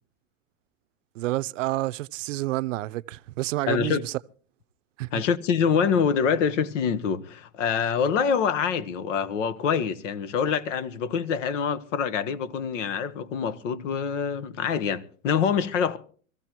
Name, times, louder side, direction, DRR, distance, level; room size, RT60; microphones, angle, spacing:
voice 1, 1.2-4.2 5.0-5.2, right 17 dB, 75° right, 0.6 m, -29 dB
voice 2, 3.7-4.0 5.1-16.0, left 7 dB, 70° left, 1.3 m, -25 dB
24.5 x 15.0 x 3.0 m
supercardioid pair, 140°, 38 cm